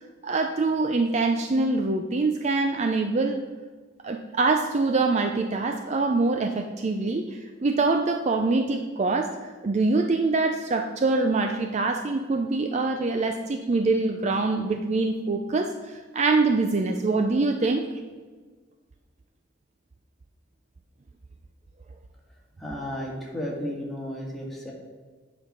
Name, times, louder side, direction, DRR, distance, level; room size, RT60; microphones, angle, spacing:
voice 1, 0.2-3.4 4.0-17.8, right 3 dB, 35° right, 5 dB, 0.4 m, -24 dB
voice 2, 22.6-24.7, equal, ahead, -4 dB, 1.8 m, -33 dB
8.9 x 5.2 x 5.4 m, 1.4 s
head